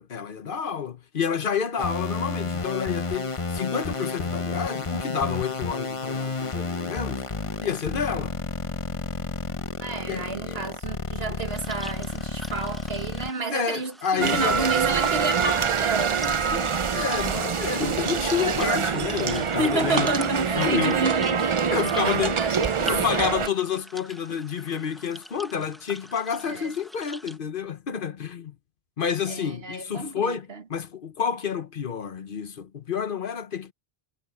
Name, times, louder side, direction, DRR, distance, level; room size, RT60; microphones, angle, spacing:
voice 1, 0.0-7.3 7.6-8.4 10.1-10.6 13.5-14.7 16.9-20.1 20.5-21.0 21.7-22.4 22.8-28.6 29.0-33.7, left 7 dB, 55° left, 1.1 m, -29 dB
sound 1, 1.8-13.3, left 4 dB, 30° left, 1.0 m, -31 dB
voice 2, 9.8-16.7 17.7-18.0 19.6-23.0 26.5-26.7 29.3-30.6, right 2 dB, 70° right, 1.8 m, -30 dB
sound 2, 11.4-27.4, equal, ahead, 1.2 m, -45 dB
sound 3, 14.2-23.5, right 6 dB, 35° right, 0.5 m, -25 dB
omnidirectional pair, 1.1 m